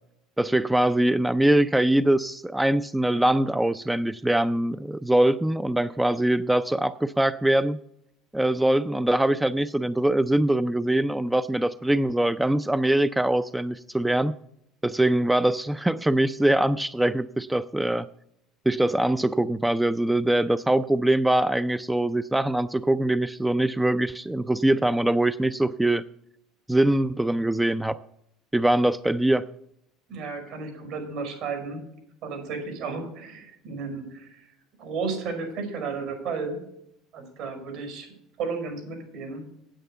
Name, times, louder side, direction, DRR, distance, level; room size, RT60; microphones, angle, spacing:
voice 1, 0.4-7.8 8.3-14.3 14.8-18.1 18.7-26.0 26.7-28.0 28.5-29.4, right 1 dB, 5° right, 13 dB, 0.3 m, -23 dB
voice 2, 30.1-31.8 32.2-34.4 34.8-36.6 37.1-38.1 38.4-39.4, right 4 dB, 70° right, 4 dB, 5.2 m, -33 dB
9.0 x 8.1 x 6.8 m, 0.76 s
supercardioid pair, 95°, 0 cm